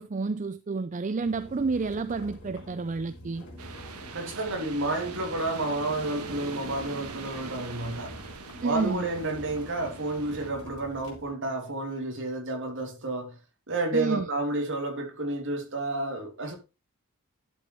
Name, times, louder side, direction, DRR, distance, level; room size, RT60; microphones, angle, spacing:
voice 1, 0.0-3.5 8.6-9.1 13.9-14.3, right 4 dB, 35° right, 0.4 m, -30 dB
sound 1, 1.2-11.3, left 1 dB, 55° left, 4.3 m, -47 dB
sound 2, 3.6-10.5, right 4 dB, 85° right, 1.4 m, -42 dB
voice 2, 4.1-8.2 8.6-13.4 13.7-16.6, right 2 dB, 55° right, 3.2 m, -31 dB
11.5 x 6.9 x 3.3 m
head